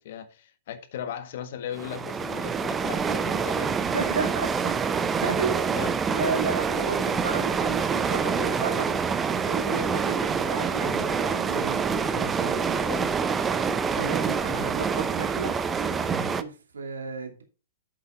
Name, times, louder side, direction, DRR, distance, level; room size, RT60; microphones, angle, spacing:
voice 1, 0.0-3.8 5.7-5.9 12.5-13.1, left 9 dB, 55° left, 1.5 m, -37 dB
sound 1, 1.7-16.4, right 6 dB, 15° right, 0.7 m, -26 dB
voice 2, 3.8-8.9 9.3-12.6 14.0-15.6 16.0-17.4, right 5 dB, 70° right, 2.5 m, -33 dB
8.1 x 7.9 x 4.3 m
figure-of-eight pair, 110°, 0 cm